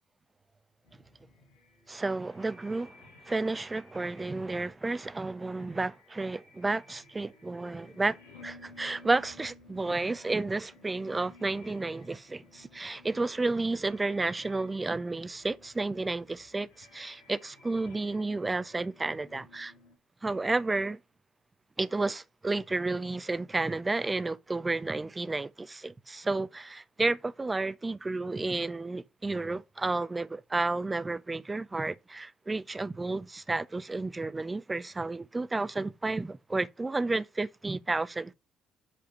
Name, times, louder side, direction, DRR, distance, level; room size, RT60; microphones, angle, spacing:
sound 1, 0.8-20.0, left 3 dB, 85° left, 1.7 m, -57 dB
voice 1, 1.9-3.0 3.3-8.2 8.4-19.7 20.2-21.0 21.8-38.3, right 3 dB, 20° right, 0.6 m, -31 dB
5.9 x 4.9 x 5.8 m
hypercardioid pair, 50°, 0 cm